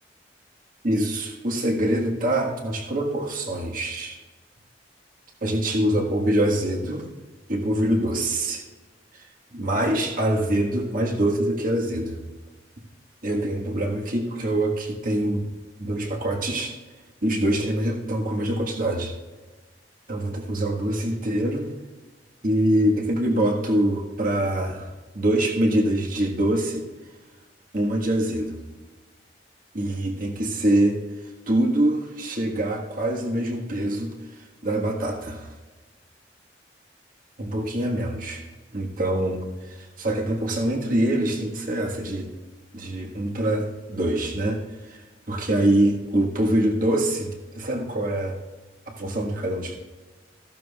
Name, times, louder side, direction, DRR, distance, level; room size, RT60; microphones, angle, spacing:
voice 1, 0.8-4.2 5.4-7.1 7.5-8.6 9.1-9.2 9.5-12.2 13.2-15.5 15.8-16.7 17.2-19.1 20.1-21.7 22.4-26.9 27.7-28.6 29.7-31.0 31.5-34.1 34.6-35.5 37.4-38.4 38.7-39.4 39.7-42.3 42.7-44.6 44.9-45.0 45.3-48.4 48.9-49.8, right 1 dB, 50° right, 1 dB, 1.6 m, -24 dB
15.0 x 12.0 x 2.4 m, 1.2 s
head